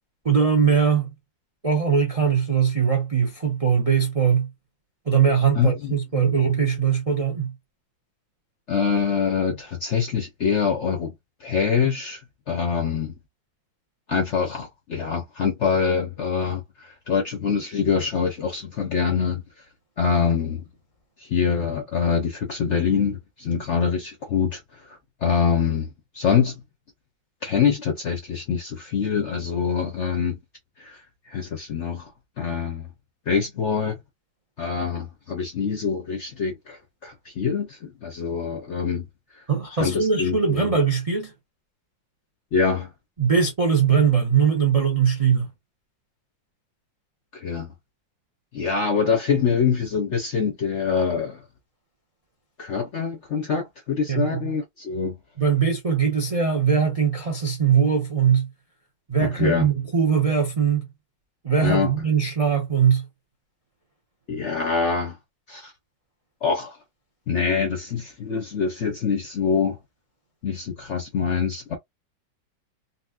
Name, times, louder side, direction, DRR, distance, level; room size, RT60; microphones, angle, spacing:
voice 1, 0.2-1.1 1.6-4.5 5.1-7.5 39.5-41.3 43.2-45.5 54.1-54.4 55.4-58.5 59.1-60.9 61.4-63.0, right 6 dB, 55° right, 0.4 m, -21 dB
voice 2, 5.5-6.3 8.7-11.1 11.4-12.2 12.5-13.1 14.1-19.4 20.0-20.6 21.2-24.6 24.9-25.9 26.1-26.5 27.4-30.4 30.8-31.0 31.3-32.1 32.4-32.9 33.3-34.0 34.6-39.1 39.8-40.7 42.5-42.9 47.3-47.7 48.5-51.4 52.6-55.2 59.2-59.7 61.6-61.9 64.3-65.2 65.5-65.7 66.4-66.8 67.3-69.8 70.4-71.8, left 6 dB, 60° left, 0.7 m, -25 dB
4.1 x 2.1 x 2.5 m
omnidirectional pair, 2.1 m